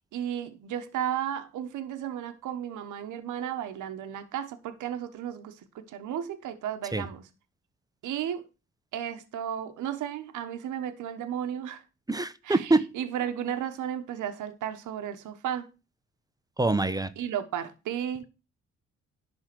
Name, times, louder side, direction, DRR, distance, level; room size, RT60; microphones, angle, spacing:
voice 1, 0.0-7.3 8.0-8.4 8.9-11.8 12.4-15.7 17.2-18.3, right 10 dB, 80° right, 1.2 m, -34 dB
voice 2, 12.1-12.9 16.6-17.1, right 2 dB, 10° right, 0.8 m, -24 dB
11.5 x 3.8 x 7.5 m
cardioid pair, 90°, 30 cm